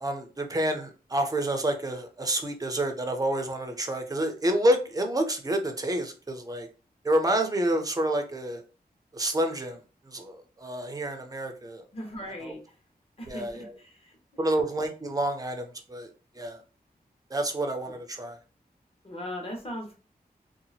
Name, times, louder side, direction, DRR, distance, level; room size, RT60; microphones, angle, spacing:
voice 1, 0.0-6.7 7.0-8.6 9.1-11.8 12.4-12.6 13.3-13.8 14.4-16.6 17.3-18.4, right 1 dB, 20° right, 5 dB, 0.6 m, -28 dB
voice 2, 11.9-12.8 13.2-14.2 17.9-18.0 19.0-19.9, equal, 35° left, 0 dB, 1.2 m, -38 dB
2.8 x 2.4 x 2.7 m, 0.35 s
wide cardioid pair, 85°, 16 cm